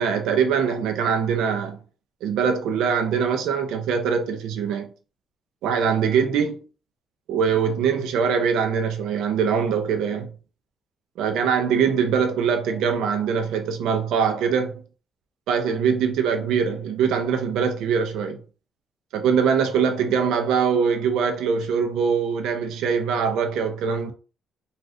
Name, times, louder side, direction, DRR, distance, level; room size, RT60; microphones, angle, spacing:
voice 1, 0.0-1.8 2.2-4.9 5.6-6.6 7.3-10.3 11.2-14.7 15.5-18.4 19.1-24.1, right 6 dB, 90° right, 0.5 m, -22 dB
2.6 x 2.4 x 3.4 m
cardioid pair, 90°, 0 cm